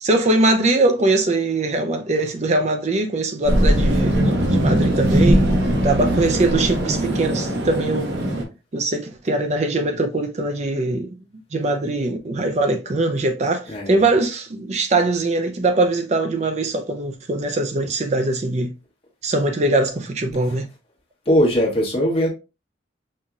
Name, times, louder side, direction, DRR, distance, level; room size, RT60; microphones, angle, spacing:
voice 1, 0.0-5.5 5.8-8.2 8.7-11.1 11.5-18.7 19.2-20.7, right 2 dB, 35° right, 0.5 m, -21 dB
sound 1, 3.4-8.4, right 1 dB, 75° right, 1.2 m, -19 dB
voice 2, 13.7-14.1 20.4-20.6 21.2-22.3, equal, 30° left, 1.3 m, -20 dB
5.4 x 2.6 x 2.3 m
head